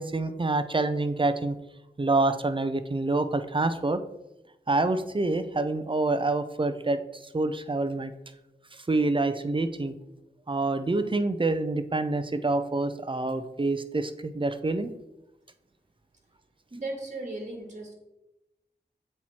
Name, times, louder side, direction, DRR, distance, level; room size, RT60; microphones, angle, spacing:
voice 1, 0.0-1.6 2.0-4.0 4.7-7.0 7.3-8.1 8.7-9.9 10.5-14.9, right 2 dB, 30° right, 11 dB, 0.6 m, -27 dB
voice 2, 16.7-17.9, right 2 dB, 45° right, 1 dB, 1.8 m, -36 dB
7.9 x 4.4 x 4.3 m, 0.92 s
wide cardioid pair, 70°, 18 cm